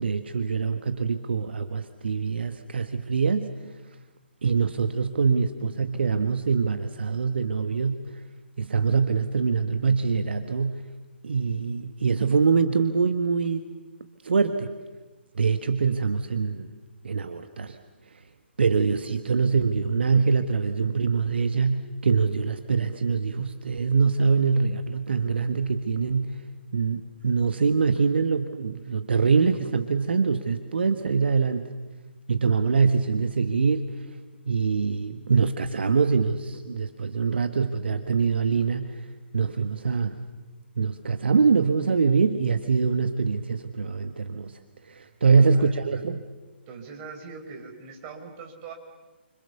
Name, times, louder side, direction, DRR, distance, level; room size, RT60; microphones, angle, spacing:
voice 1, 0.0-3.6 4.4-8.2 8.6-10.8 11.2-13.7 14.2-14.7 15.3-16.7 17.0-17.8 18.6-26.4 26.7-31.7 32.3-34.0 34.5-39.1 39.3-40.2 40.8-44.6 44.9-46.2, right 5 dB, 65° right, 8 dB, 1.4 m, -24 dB
voice 2, 45.0-46.1 46.7-48.7, right 5 dB, 25° right, 3 dB, 4.8 m, -42 dB
30.0 x 26.0 x 7.0 m, 1.2 s
figure-of-eight pair, 135°, 6 cm